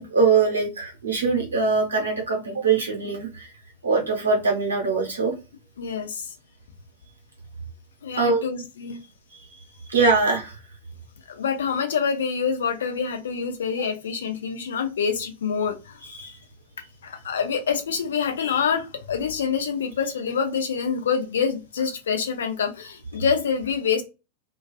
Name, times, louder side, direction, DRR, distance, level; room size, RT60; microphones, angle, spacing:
voice 1, 0.0-3.5 3.8-5.3 8.2-8.4 9.9-10.6 16.1-16.3, right 4 dB, 70° right, 2 dB, 0.9 m, -22 dB
voice 2, 5.8-6.2 8.0-9.0 11.3-16.0 17.0-24.0, left 6 dB, 65° left, 5 dB, 0.5 m, -26 dB
2.3 x 2.3 x 2.3 m, 0.28 s
figure-of-eight pair, 90°, 0 cm